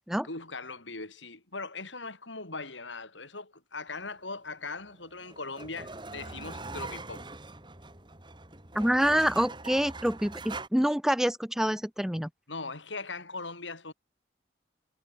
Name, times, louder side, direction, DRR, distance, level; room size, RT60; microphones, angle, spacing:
voice 1, 0.2-7.3 12.5-13.9, left 3 dB, 85° left, 7.8 m, -40 dB
sound 1, 4.8-10.7, right 3 dB, 25° right, 3.3 m, -42 dB
voice 2, 8.7-12.3, equal, 5° right, 0.5 m, -26 dB
head